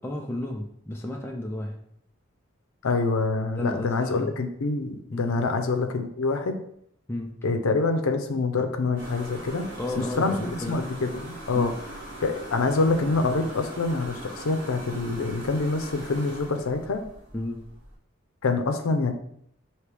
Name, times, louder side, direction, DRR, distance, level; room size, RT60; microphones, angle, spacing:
voice 1, 0.0-1.8 3.6-4.3 5.1-5.4 7.1-7.3 9.8-10.8 11.5-11.8 17.3-17.6, left 1 dB, 10° left, 0 dB, 0.3 m, -32 dB
voice 2, 2.8-6.6 7.4-9.7 10.2-11.7 12.2-17.0 18.4-19.1, left 3 dB, 80° left, 6 dB, 0.5 m, -26 dB
sound 1, 9.0-17.9, right 1 dB, 40° right, 1.3 m, -41 dB
4.7 x 2.9 x 3.3 m, 0.69 s
head